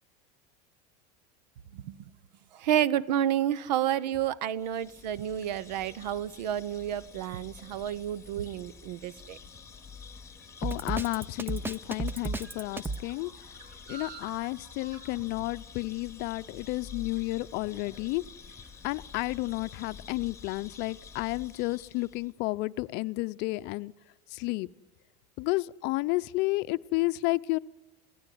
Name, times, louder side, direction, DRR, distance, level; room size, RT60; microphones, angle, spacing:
voice 1, 2.5-9.4, right 11 dB, 85° right, 0.9 m, -30 dB
sound 1, 4.5-22.3, left 6 dB, 15° left, 2.2 m, -49 dB
sound 2, 9.7-20.3, right 4 dB, 70° right, 4.0 m, -55 dB
voice 2, 10.6-13.3 13.9-18.2 18.8-23.9 24.3-24.7 25.4-27.6, left 22 dB, 55° left, 0.7 m, -31 dB
Drum kit, 10.6-13.0, right 3 dB, 10° right, 0.7 m, -33 dB
20.5 x 17.0 x 9.5 m
supercardioid pair, 125°, 21 cm